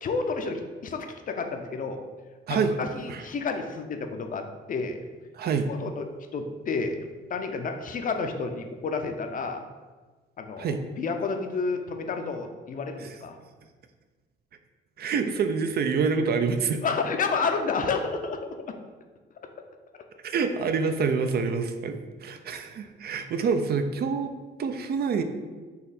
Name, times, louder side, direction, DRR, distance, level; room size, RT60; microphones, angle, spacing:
voice 1, 0.0-2.0 2.5-5.0 5.7-6.1 6.3-7.0 7.3-9.6 10.4-13.4 16.8-18.6, left 4 dB, 45° left, 6 dB, 0.5 m, -30 dB
voice 2, 2.5-2.8 3.1-3.2 5.3-5.7 10.6-10.8 13.0-13.1 15.0-16.8 20.2-24.3 24.6-25.2, right 5 dB, 55° right, 8 dB, 0.4 m, -27 dB
4.1 x 2.8 x 4.0 m, 1.4 s
cardioid pair, 90°, 20 cm